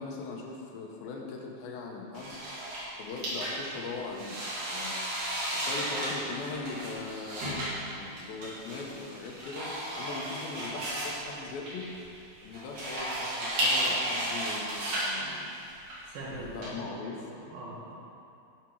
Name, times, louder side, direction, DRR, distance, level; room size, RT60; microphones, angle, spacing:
voice 1, 0.0-2.4 3.0-4.4 4.7-5.0 5.5-11.9 12.4-15.5 16.3-17.3, left 4 dB, 80° left, 0 dB, 2.8 m, -40 dB
sound 1, 2.1-16.7, right 1 dB, 60° right, 3.7 m, -34 dB
voice 2, 16.1-17.9, right 1 dB, 80° right, -4 dB, 3.4 m, -42 dB
13.0 x 5.9 x 4.6 m, 2.6 s
omnidirectional pair, 4.2 m